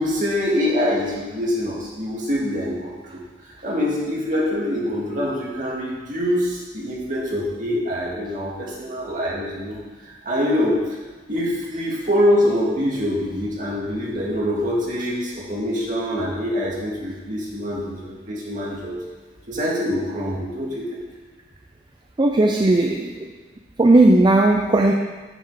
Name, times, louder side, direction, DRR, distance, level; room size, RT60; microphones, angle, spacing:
voice 1, 0.0-3.2 3.6-9.8 10.0-11.0 11.3-19.0 19.5-21.0, left 1 dB, 45° right, -4 dB, 2.1 m, -24 dB
voice 2, 22.2-23.3 23.8-24.9, right 2 dB, 25° right, 2 dB, 0.5 m, -16 dB
9.0 x 5.7 x 4.8 m, 1.3 s
head